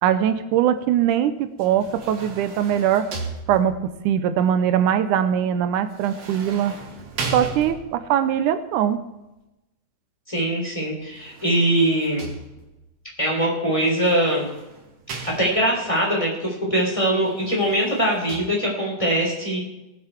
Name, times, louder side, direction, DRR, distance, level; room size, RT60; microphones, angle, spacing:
voice 1, 0.0-3.1 3.5-6.8 7.3-9.0, right 9 dB, 85° right, 11 dB, 2.2 m, -21 dB
sound 1, 1.6-4.0 5.9-8.2 11.0-12.9 13.9-15.9 17.2-18.4, right 4 dB, 55° right, 2.6 m, -36 dB
voice 2, 10.3-12.3 13.2-14.5 15.4-19.6, right 1 dB, 10° left, -2 dB, 3.2 m, -22 dB
19.0 x 7.8 x 4.5 m, 0.97 s
omnidirectional pair, 3.6 m